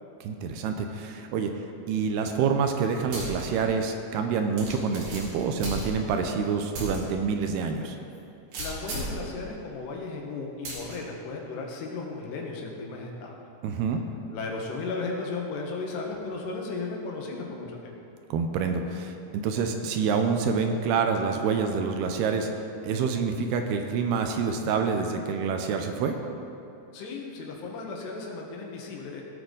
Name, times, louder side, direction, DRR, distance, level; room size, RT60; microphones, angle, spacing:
voice 1, 0.2-1.5 1.9-8.0 13.6-14.0 18.3-26.2, right 5 dB, 80° right, 5 dB, 2.6 m, -27 dB
sound 1, 3.1-3.4 3.9-4.0 4.6-6.2 6.7-7.0 7.4-7.5 8.5-9.2 10.6-10.9, equal, 55° right, 3.8 m, -35 dB
voice 2, 8.6-13.3 14.3-18.0 26.9-29.2, left 3 dB, 80° left, 0 dB, 3.4 m, -35 dB
17.0 x 8.8 x 3.9 m, 2.7 s
omnidirectional pair, 4.8 m